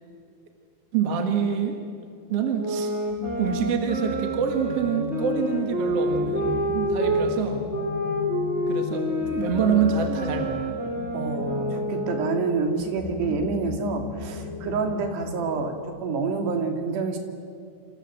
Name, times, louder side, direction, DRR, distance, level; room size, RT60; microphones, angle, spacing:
voice 1, 0.9-1.8 2.3-2.9 3.4-7.7 8.7-10.7, right 6 dB, 45° right, 3 dB, 2.2 m, -26 dB
sound 1, 2.6-7.3 7.7-12.7, right 1 dB, 15° right, 4.3 m, -28 dB
sound 2, 3.1-15.8, left 4 dB, 90° left, 4.4 m, -37 dB
voice 2, 11.1-15.7 16.0-17.2, right 4 dB, 80° right, 4 dB, 4.5 m, -27 dB
27.5 x 27.0 x 7.9 m, 2.3 s
omnidirectional pair, 4.8 m